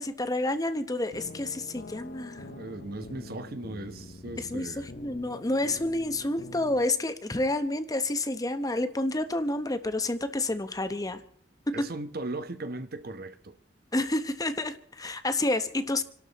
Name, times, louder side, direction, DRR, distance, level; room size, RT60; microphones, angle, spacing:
voice 1, 0.0-2.4 4.4-11.2 11.7-11.9 13.9-16.0, left 2 dB, 20° left, 0.9 m, -29 dB
sound 1, 1.1-6.9, left 3 dB, 55° left, 0.7 m, -45 dB
voice 2, 2.3-4.9 11.7-13.6, right 2 dB, 60° right, 1.1 m, -38 dB
27.5 x 12.0 x 4.1 m
head